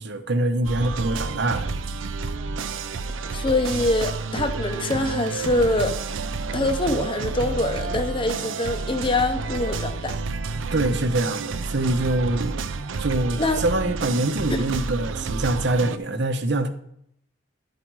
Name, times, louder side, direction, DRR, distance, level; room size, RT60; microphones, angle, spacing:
voice 1, 0.0-1.7 10.7-12.7 13.0-16.7, right 2 dB, 65° right, 0.9 m, -24 dB
sound 1, 0.6-16.0, right 4 dB, 85° right, 0.5 m, -30 dB
voice 2, 3.3-6.0 6.5-10.1 13.4-13.6 14.5-14.6, left 2 dB, 25° left, 0.8 m, -24 dB
11.5 x 5.0 x 4.7 m
head